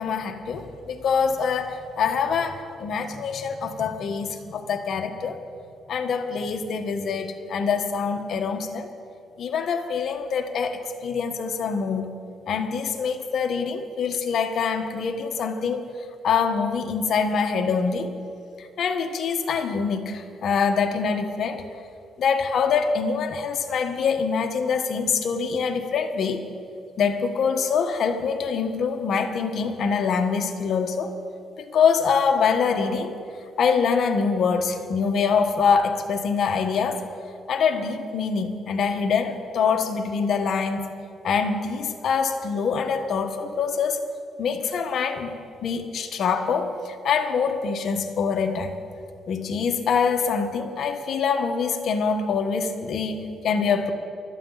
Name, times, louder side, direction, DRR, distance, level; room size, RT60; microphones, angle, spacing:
voice 1, 0.0-5.4 5.9-8.9 9.4-12.1 12.5-15.8 16.2-18.1 18.6-21.7 22.2-26.4 27.0-31.1 31.6-33.1 33.6-37.0 37.5-40.9 41.2-44.0 44.4-45.3 45.6-48.7 49.3-53.9, left 6 dB, 65° left, 5 dB, 1.3 m, -24 dB
20.0 x 13.0 x 4.1 m, 2.5 s
cardioid pair, 90°, 0 cm